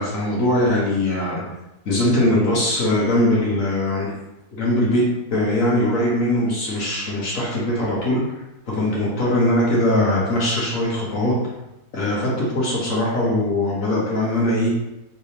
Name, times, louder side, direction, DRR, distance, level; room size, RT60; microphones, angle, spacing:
voice 1, 0.0-1.4 1.8-4.1 4.5-8.2 8.7-11.3 11.9-14.7, left 1 dB, 60° left, -6 dB, 1.5 m, -21 dB
5.4 x 3.3 x 2.8 m, 0.93 s
omnidirectional pair, 1.6 m